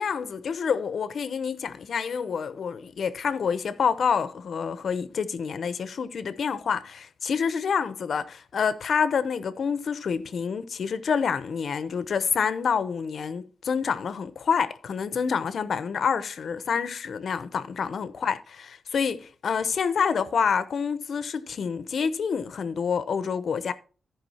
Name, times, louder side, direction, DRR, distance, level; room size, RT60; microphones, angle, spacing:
voice 1, 0.0-23.7, left 6 dB, 60° left, 0.8 m, -27 dB
14.0 x 5.3 x 4.2 m
cardioid pair, 105°, 0 cm